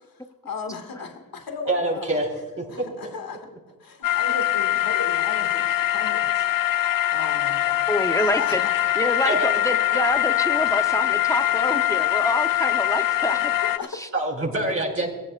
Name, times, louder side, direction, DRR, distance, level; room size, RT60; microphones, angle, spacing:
voice 1, 0.0-2.2 2.7-3.5 3.8-6.3 7.1-7.6 8.2-8.8 11.4-11.5 12.0-12.1 13.6-14.0, left 4 dB, 90° left, 4 dB, 2.0 m, -36 dB
voice 2, 1.7-2.3 2.6-2.8 9.2-9.5 14.1-15.1, right 2 dB, 40° right, -3 dB, 5.0 m, -25 dB
sound 1, 4.0-13.8, left 14 dB, 70° left, 0.6 m, -23 dB
voice 3, 7.9-8.6 9.0-9.4 9.6-13.5 13.9-14.1, equal, 10° left, 7 dB, 0.8 m, -27 dB
22.5 x 16.5 x 2.5 m, 1.3 s
wide cardioid pair, 80°, 34 cm